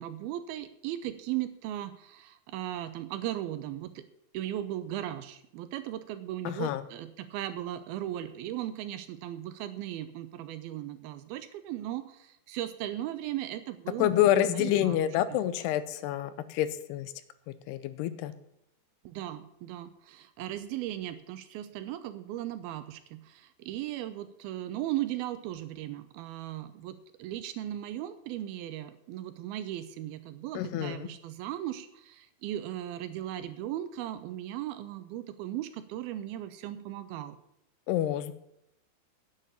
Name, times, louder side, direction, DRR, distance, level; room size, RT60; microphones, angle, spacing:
voice 1, 0.0-4.1 4.3-15.0 19.0-37.4, right 13 dB, 80° right, 11 dB, 2.3 m, -37 dB
voice 2, 6.5-6.8 14.0-17.1 17.7-18.3 30.5-31.1 37.9-38.3, left 12 dB, 90° left, 14 dB, 2.7 m, -27 dB
10.0 x 8.2 x 7.1 m, 0.79 s
omnidirectional pair, 4.7 m